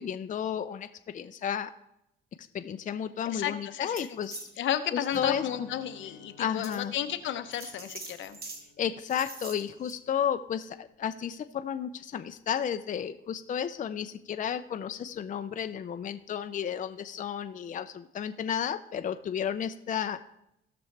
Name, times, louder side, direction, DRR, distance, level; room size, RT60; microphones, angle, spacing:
voice 1, 0.0-1.7 2.4-4.7 4.9-5.7 6.4-6.9 8.8-20.2, left 8 dB, 40° left, 8 dB, 0.5 m, -33 dB
voice 2, 3.3-4.1 4.6-8.4, left 10 dB, 75° left, 9 dB, 0.8 m, -33 dB
sound 1, 3.9-4.5 5.0-5.2 5.8-5.9 6.6-6.8 7.5-8.6 9.0-9.9, right 3 dB, 50° right, 1.9 m, -43 dB
Guitar, 5.1-10.9, left 2 dB, 85° right, 4.0 m, -53 dB
17.0 x 6.1 x 3.3 m, 0.81 s
cardioid pair, 90°, 20 cm